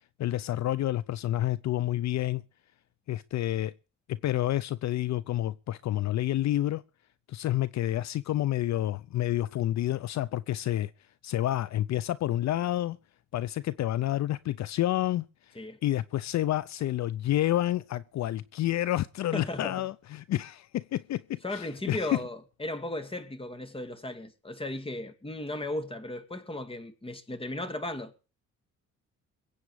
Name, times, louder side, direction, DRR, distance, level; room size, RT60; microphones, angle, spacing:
voice 1, 0.2-2.4 3.1-3.7 4.1-6.8 7.3-10.9 11.2-13.0 13.3-22.2, left 13 dB, 65° left, 0.6 m, -29 dB
voice 2, 19.3-19.8 21.4-28.1, left 1 dB, 20° left, 2.4 m, -36 dB
22.5 x 8.5 x 4.8 m
cardioid pair, 90°, 30 cm